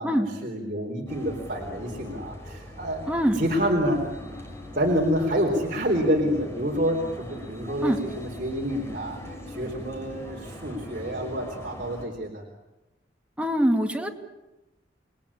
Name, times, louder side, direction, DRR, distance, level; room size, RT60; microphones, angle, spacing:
voice 1, 0.0-3.0 3.3-4.0 4.7-12.4, equal, 50° right, -1 dB, 4.0 m, -28 dB
sound 1, 1.1-12.1, left 1 dB, 15° left, 5.1 m, -41 dB
voice 2, 3.1-3.5 7.8-8.0 13.4-14.1, equal, 5° right, 3 dB, 2.2 m, -23 dB
29.5 x 21.0 x 8.7 m, 0.98 s
head